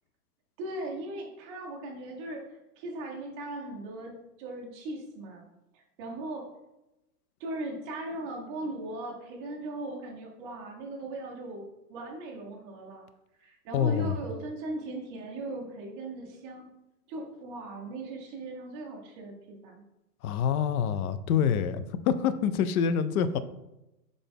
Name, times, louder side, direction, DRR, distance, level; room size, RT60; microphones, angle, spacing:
voice 1, 0.6-5.4 5.7-6.5 7.4-13.0 13.4-16.7 17.1-19.7, right 2 dB, 20° right, 0 dB, 0.4 m, -38 dB
voice 2, 13.7-14.2 20.2-23.4, left 8 dB, 60° left, 13 dB, 0.5 m, -26 dB
3.9 x 3.4 x 3.4 m, 0.93 s
hypercardioid pair, 140°, 50 cm